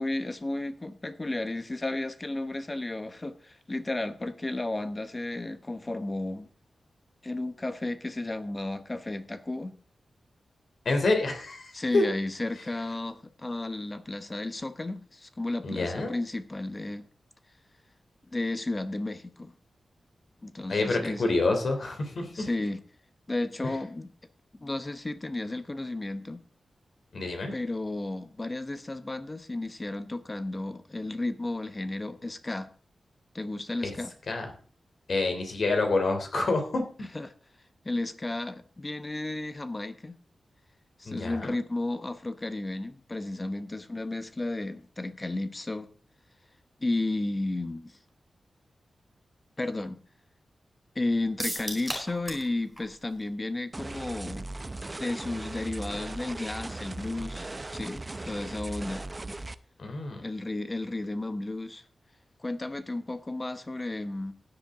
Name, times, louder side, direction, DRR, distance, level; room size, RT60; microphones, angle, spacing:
voice 1, 0.0-6.5 7.2-9.8 11.7-17.1 18.2-19.5 20.4-21.3 22.3-22.8 23.3-24.1 24.6-26.4 27.5-32.7 33.3-34.1 37.1-37.3 37.8-40.2 41.0-45.9 46.8-48.0 49.6-50.0 50.9-54.5 55.0-59.0 60.2-61.8 62.4-64.3, left 2 dB, 20° left, 1.1 m, -33 dB
voice 2, 10.8-12.0 15.6-16.1 20.7-22.5 23.6-23.8 27.1-27.5 33.8-33.9 34.3-34.4 35.1-36.8 41.0-41.5 59.8-60.2, left 3 dB, 55° left, 3.2 m, -27 dB
sound 1, 51.4-52.5 52.8-52.9 53.2-53.3, equal, ahead, 4.7 m, -34 dB
sound 2, 53.7-59.5, right 2 dB, 20° right, 0.6 m, -38 dB
16.0 x 10.5 x 3.8 m
wide cardioid pair, 150°, 0 cm